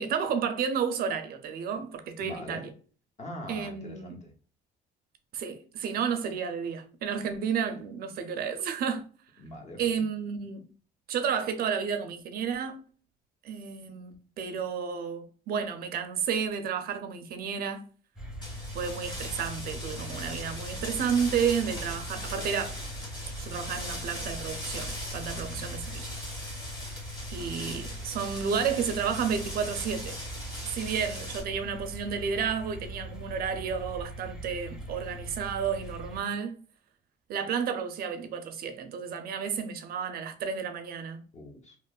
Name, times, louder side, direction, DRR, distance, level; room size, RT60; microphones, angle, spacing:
voice 1, 0.0-2.7 3.5-4.2 5.3-9.0 9.8-10.7 11.1-12.8 13.4-17.8 18.7-22.8 23.4-26.1 26.5-26.8 27.3-30.2 30.7-36.6 37.3-41.2, right 7 dB, 60° right, 0.5 m, -31 dB
voice 2, 2.2-2.6 3.2-4.2 9.4-10.0 25.3-25.6 41.3-41.8, left 1 dB, 40° left, 0.8 m, -42 dB
sound 1, 18.2-36.2, equal, 5° right, 0.6 m, -41 dB
sound 2, 18.4-31.4, left 1 dB, 25° left, 1.3 m, -40 dB
2.9 x 2.0 x 2.3 m
cardioid pair, 110°, 17 cm